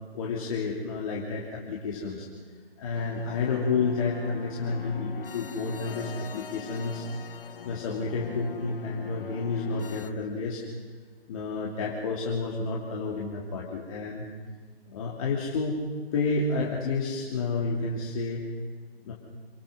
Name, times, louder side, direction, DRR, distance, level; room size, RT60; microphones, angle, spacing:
voice 1, 0.1-2.3 2.8-7.1 7.6-10.7 11.3-14.3 14.9-15.8 16.1-18.4 19.0-19.1, left 4 dB, 35° left, -4 dB, 3.1 m, -30 dB
sound 1, 2.9-10.1, left 6 dB, 60° left, 1.2 m, -42 dB
28.0 x 20.5 x 6.3 m, 1.5 s
figure-of-eight pair, 145°, 31 cm